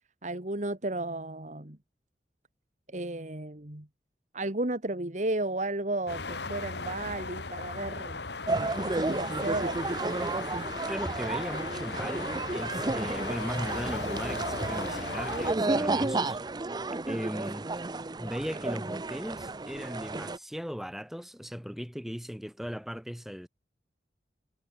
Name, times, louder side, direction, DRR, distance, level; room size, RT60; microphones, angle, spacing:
voice 1, 0.2-1.8 2.9-3.9 4.3-8.2 8.8-9.8, right 2 dB, 45° right, 2.0 m, -33 dB
sound 1, 6.1-15.5, left 3 dB, 75° left, 2.4 m, -37 dB
sound 2, 8.5-20.4, right 2 dB, 25° right, 0.6 m, -32 dB
voice 2, 10.9-16.4 17.1-17.7 18.2-23.5, equal, ahead, 1.6 m, -37 dB
head